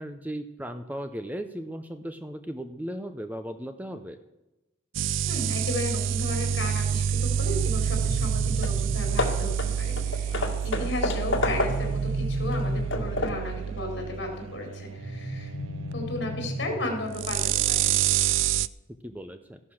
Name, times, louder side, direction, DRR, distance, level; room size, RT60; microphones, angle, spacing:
voice 1, 0.0-4.2 10.3-10.9 19.0-19.6, equal, 10° right, 8 dB, 0.6 m, -37 dB
sound 1, 4.9-18.7, right 9 dB, 75° right, 0.4 m, -28 dB
voice 2, 5.3-15.5 15.9-17.9, left 1 dB, 60° left, 2 dB, 4.3 m, -34 dB
sound 2, 7.6-9.6 11.3-13.3 15.0-17.0, equal, 15° left, 6.6 m, -33 dB
Hammer / Wood, 8.3-8.4 8.6-8.8 9.2-12.0 12.5-13.5, left 2 dB, 75° left, 2.0 m, -30 dB
14.5 x 11.5 x 6.4 m, 0.98 s
head